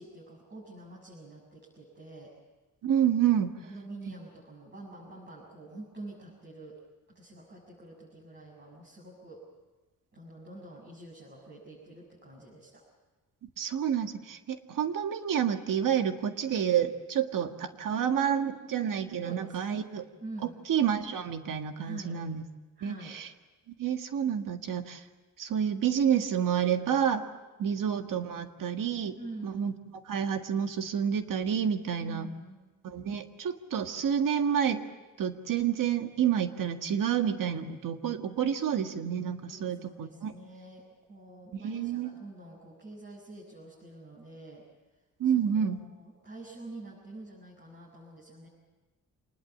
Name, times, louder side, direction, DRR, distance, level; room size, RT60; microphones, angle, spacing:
voice 1, 0.0-2.3 3.6-6.8 7.1-9.4 10.1-12.8 19.2-19.8 20.2-20.6 21.8-22.2 22.8-23.2 29.2-29.6 32.0-32.6 39.5-44.6 45.2-48.5, right 2 dB, 35° right, -4 dB, 7.1 m, -46 dB
voice 2, 2.8-3.5 13.6-20.0 20.7-22.4 22.8-23.3 23.8-25.0 25.4-27.3 27.6-29.2 29.4-29.7 30.1-32.3 32.8-34.8 35.2-40.3 41.6-42.1 45.2-45.8, right 8 dB, 90° right, 6 dB, 1.8 m, -29 dB
26.5 x 20.5 x 8.4 m, 1.2 s
wide cardioid pair, 150°, 32 cm